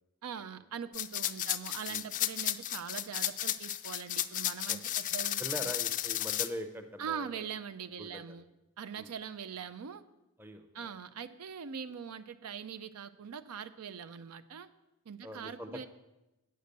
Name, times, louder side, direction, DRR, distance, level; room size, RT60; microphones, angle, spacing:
voice 1, 0.2-5.7 7.0-8.5 8.8-10.0 10.7-14.7 15.1-15.9, right 7 dB, 80° right, 12 dB, 0.5 m, -42 dB
sound 1, 0.9-6.5, left 12 dB, 35° left, 0.3 m, -33 dB
voice 2, 5.4-7.5 8.0-8.4 9.0-9.1 10.4-10.9 15.2-15.9, equal, 10° right, 7 dB, 0.6 m, -43 dB
9.1 x 6.6 x 6.7 m, 0.97 s
head